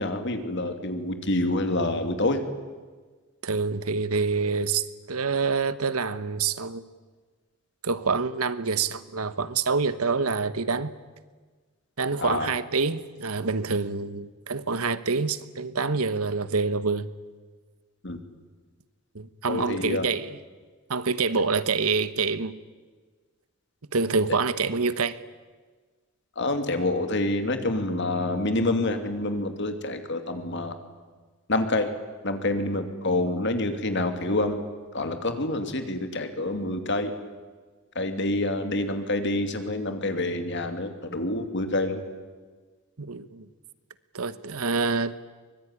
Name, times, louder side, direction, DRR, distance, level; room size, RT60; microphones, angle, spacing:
voice 1, 0.0-2.4 12.2-12.5 18.0-18.2 19.5-20.1 26.4-30.7 31.5-31.9 32.2-34.6 34.9-37.1 37.9-42.0, left 2 dB, 50° left, 2.7 m, -27 dB
voice 2, 3.4-6.8 7.8-10.9 12.0-17.1 19.1-20.4 20.9-22.5 23.9-25.2 43.0-43.4 44.1-45.2, right 4 dB, 80° right, 1.2 m, -26 dB
24.0 x 21.5 x 9.9 m
head